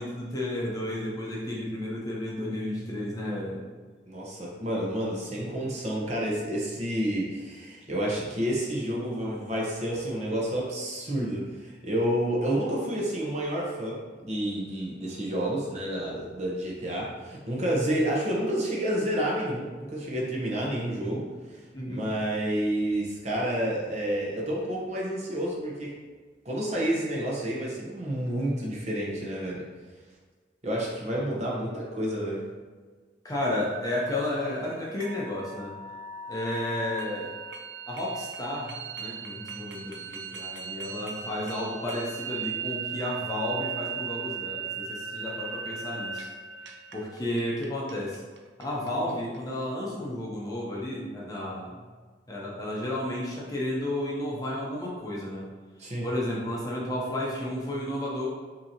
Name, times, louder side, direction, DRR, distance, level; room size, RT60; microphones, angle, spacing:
voice 1, 0.0-3.6 21.7-22.1 33.2-35.7 36.3-37.3 37.9-46.3 46.9-48.2 48.6-51.8 52.3-55.5 56.0-58.3, left 1 dB, 20° left, -5 dB, 0.8 m, -32 dB
voice 2, 4.1-21.3 21.9-25.9 26.4-29.6 30.6-32.4 55.8-56.1, right 1 dB, 40° right, -3 dB, 0.9 m, -29 dB
sound 1, 33.5-49.4, right 5 dB, 75° right, 0.5 m, -38 dB
6.0 x 2.8 x 2.8 m, 1.4 s
head